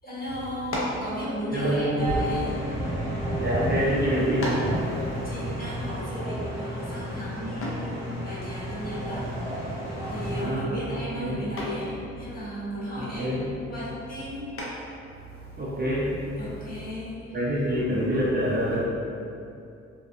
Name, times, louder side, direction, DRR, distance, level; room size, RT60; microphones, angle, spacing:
voice 1, 0.0-2.6 5.2-9.3 10.1-14.5 16.4-17.2, equal, 30° left, -9 dB, 1.0 m, -35 dB
sound 1, 0.7-1.1 2.0-3.2 3.9-4.0 4.4-4.8 7.6-7.9 9.8-10.2 10.6-11.0 11.6-11.9 14.6-15.0, left 1 dB, 45° left, 0.6 m, -33 dB
voice 2, 1.5-2.0 3.3-4.6 5.1-5.2 10.3-10.8 11.1-11.4 13.0-13.5 15.6-16.1 17.3-18.8, equal, 35° right, -7 dB, 0.6 m, -26 dB
sound 2, 2.0-10.4, equal, 10° right, 1.0 m, -32 dB
2.4 x 2.1 x 2.5 m, 2.5 s
supercardioid pair, 55°, 30 cm